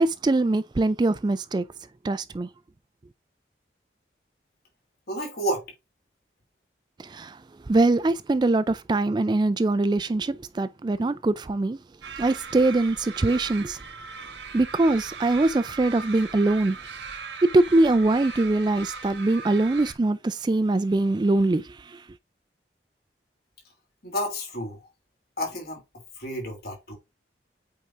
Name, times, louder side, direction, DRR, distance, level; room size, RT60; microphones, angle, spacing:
voice 1, 0.0-1.6 2.0-2.5 7.0-7.4 7.7-11.8 12.2-13.8 14.5-16.8 17.4-22.0, right 2 dB, 25° right, 0.3 m, -23 dB
voice 2, 5.1-5.7 24.0-24.9 25.4-25.8 26.2-26.9, equal, 55° left, 2.9 m, -30 dB
sound 1, 12.0-19.9, right 5 dB, 80° right, 1.3 m, -39 dB
8.3 x 4.6 x 2.5 m
head